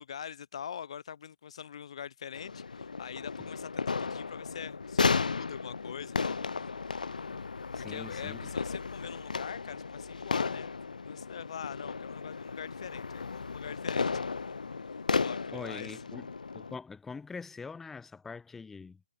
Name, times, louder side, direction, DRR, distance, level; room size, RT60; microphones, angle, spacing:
voice 1, 0.0-6.4 7.8-10.7 11.0-14.1 15.2-15.9, left 8 dB, 45° left, 0.9 m, -43 dB
sound 1, 2.3-16.8, left 4 dB, 65° left, 0.4 m, -34 dB
voice 2, 7.7-8.5 15.5-19.0, left 4 dB, 5° left, 1.1 m, -44 dB
figure-of-eight pair, 140°, 5 cm